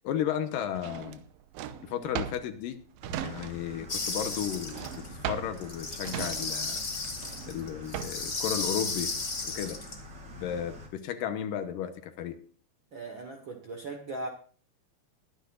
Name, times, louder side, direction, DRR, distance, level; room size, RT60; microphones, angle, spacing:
voice 1, 0.0-1.2 1.8-2.8 3.2-6.8 7.5-9.1 9.4-9.8 10.4-12.4, left 9 dB, 75° left, 9 dB, 2.5 m, -34 dB
Drawer open or close, 0.8-3.9 4.1-8.4, right 9 dB, 80° right, 2.5 m, -38 dB
sound 1, 3.0-10.9, left 1 dB, 35° right, 2.7 m, -46 dB
sound 2, 3.9-5.1 5.6-10.0, left 3 dB, 30° left, 1.3 m, -34 dB
voice 2, 12.9-14.3, right 2 dB, 55° right, 2 dB, 1.4 m, -38 dB
22.0 x 10.0 x 2.5 m, 0.41 s
omnidirectional pair, 4.2 m